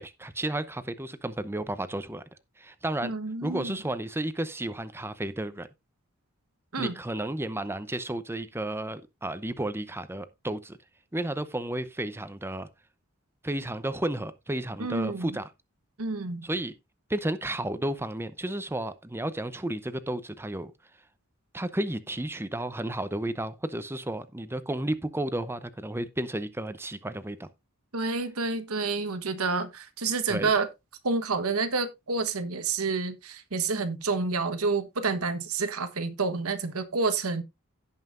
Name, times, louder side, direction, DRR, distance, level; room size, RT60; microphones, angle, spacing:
voice 1, 0.0-2.2 2.6-3.1 3.4-5.7 6.8-10.8 11.1-12.7 13.4-15.5 16.4-16.7 17.1-20.7 21.5-27.5 30.3-30.5, right 1 dB, 10° right, 0.7 m, -32 dB
voice 2, 3.0-3.8 6.7-6.9 14.8-15.4 16.0-16.4 27.9-30.7 31.0-37.4, right 4 dB, 90° right, 1.3 m, -29 dB
16.5 x 5.6 x 2.6 m
head